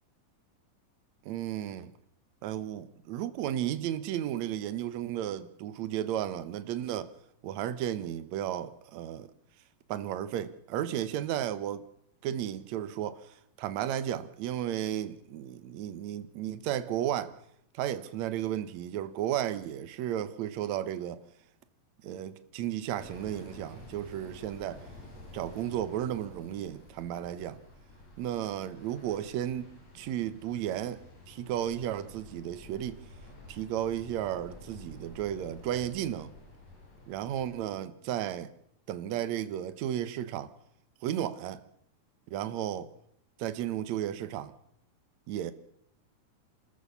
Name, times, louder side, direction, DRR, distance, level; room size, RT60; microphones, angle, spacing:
voice 1, 1.2-1.9 2.4-7.1 7.4-9.3 9.9-11.9 12.2-17.3 17.7-21.2 22.0-24.8 25.3-27.6 28.2-33.0 33.5-36.3 37.1-38.5 38.9-40.5 41.0-41.6 42.3-42.9 43.4-44.5 45.3-45.5, right 11 dB, 65° right, 2.0 m, -34 dB
sound 1, 23.0-37.6, left 2 dB, 60° left, 6.2 m, -51 dB
28.5 x 13.5 x 6.9 m
omnidirectional pair, 4.1 m